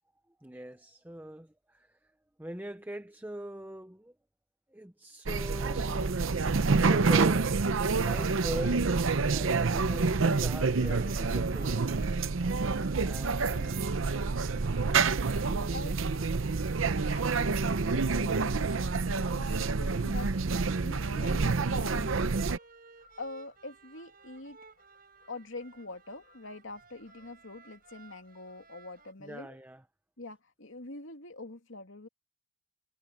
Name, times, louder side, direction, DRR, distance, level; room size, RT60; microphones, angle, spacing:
voice 1, 0.4-2.0 2.4-4.1 4.7-7.5 7.9-12.0 13.0-13.8 15.5-15.9 29.2-29.8, right 1 dB, 10° right, 0.6 m, -42 dB
sound 1, 5.3-22.6, right 4 dB, 80° right, 0.7 m, -28 dB
Fowl / Bird vocalization bird call bird song, 9.6-29.5, left 4 dB, 45° left, 6.4 m, -63 dB
sound 2, 10.5-29.1, right 4 dB, 45° right, 6.9 m, -55 dB
voice 2, 13.1-13.9 15.4-16.3 17.1-20.3 20.8-21.5 21.8-22.4 23.2-24.6 25.3-29.6 30.2-32.1, left 2 dB, 75° left, 2.7 m, -45 dB
head